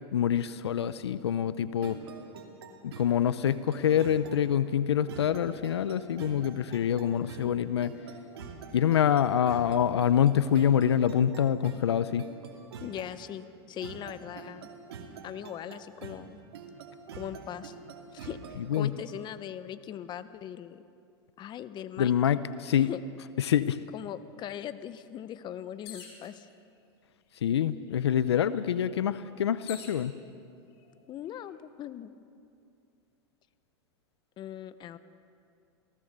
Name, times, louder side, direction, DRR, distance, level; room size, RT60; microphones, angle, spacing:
voice 1, 0.1-2.0 2.8-7.9 8.7-12.3 18.6-18.9 22.0-22.9 23.4-23.8 27.4-30.1, left 9 dB, 90° left, 15 dB, 0.7 m, -26 dB
sound 1, 1.8-19.2, right 5 dB, 75° right, 2.7 m, -46 dB
voice 2, 12.8-14.7 15.2-16.4 17.2-17.7 18.1-18.4 18.7-20.8 21.4-22.1 22.8-23.0 23.9-26.5 31.1-32.1 34.4-35.0, left 10 dB, 35° left, 12 dB, 1.0 m, -40 dB
sound 2, 25.8-26.3 27.2-27.3 27.6-30.0 30.8-31.3, left 8 dB, 65° left, 5.3 m, -47 dB
28.0 x 17.5 x 6.8 m, 2.5 s
hypercardioid pair, 110°, 14 cm